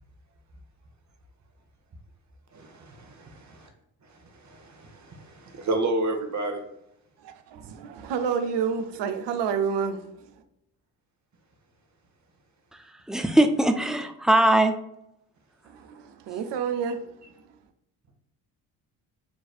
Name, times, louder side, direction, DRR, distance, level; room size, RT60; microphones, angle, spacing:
voice 1, 2.5-3.7 4.0-6.6, right 2 dB, 35° right, 1.1 m, -31 dB
voice 2, 7.2-10.0 15.7-17.1, right 6 dB, 65° right, 0.7 m, -29 dB
voice 3, 13.1-14.7, right 1 dB, ahead, 0.4 m, -20 dB
5.2 x 3.2 x 2.4 m
hypercardioid pair, 50°, 46 cm